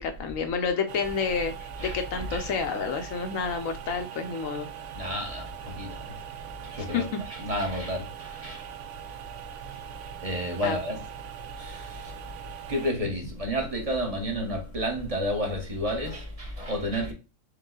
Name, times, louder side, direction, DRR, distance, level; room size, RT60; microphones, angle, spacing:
voice 1, 0.0-1.5 1.8-4.7 6.8-7.2 10.6-10.8, left 5 dB, 70° left, 1.0 m, -29 dB
sound 1, 0.9-12.9, right 11 dB, 65° right, 0.8 m, -42 dB
voice 2, 1.8-2.4 4.9-6.1 6.6-8.7 9.7-9.8 10.2-11.0 11.6-12.1 12.7-17.1, equal, 30° right, 0.8 m, -31 dB
4.7 x 2.2 x 3.7 m
omnidirectional pair, 1.5 m